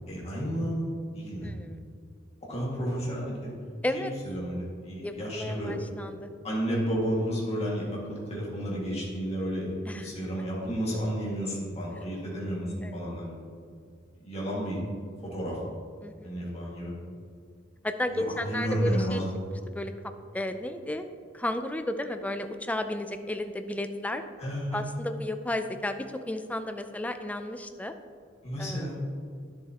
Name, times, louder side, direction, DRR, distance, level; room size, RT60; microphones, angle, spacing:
voice 1, 0.1-1.5 2.5-3.5 3.9-6.1 6.4-13.5 14.2-14.8 15.3-15.6 16.2-16.9 18.1-19.3 24.4-24.8 28.4-29.0, equal, 35° left, -5 dB, 2.0 m, -32 dB
voice 2, 1.4-1.8 3.8-4.1 5.0-6.3 9.9-10.1 12.8-12.9 16.0-16.3 17.8-19.2 19.7-19.9 20.3-21.1 21.3-24.2 24.7-27.9 28.6-28.8, left 1 dB, 5° left, 8 dB, 0.4 m, -33 dB
10.5 x 7.2 x 2.9 m, 2.2 s
head